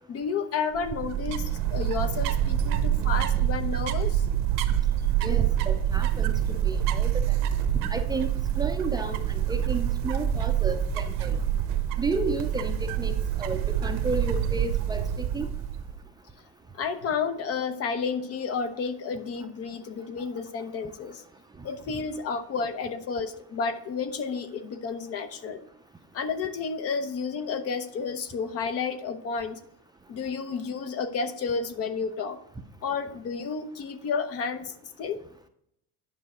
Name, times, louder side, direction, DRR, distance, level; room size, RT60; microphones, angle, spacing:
voice 1, 0.1-4.2 16.7-21.2 21.6-25.7 26.1-29.6 30.1-32.4 32.8-35.2, left 5 dB, 45° left, 11 dB, 0.8 m, -31 dB
sound 1, 0.8-16.0, right 10 dB, 70° right, 0.9 m, -26 dB
voice 2, 5.2-7.2 7.7-8.3 8.6-11.4 12.0-15.5, right 3 dB, 10° right, 5 dB, 0.5 m, -32 dB
9.7 x 6.0 x 4.2 m, 0.73 s
cardioid pair, 130°, 34 cm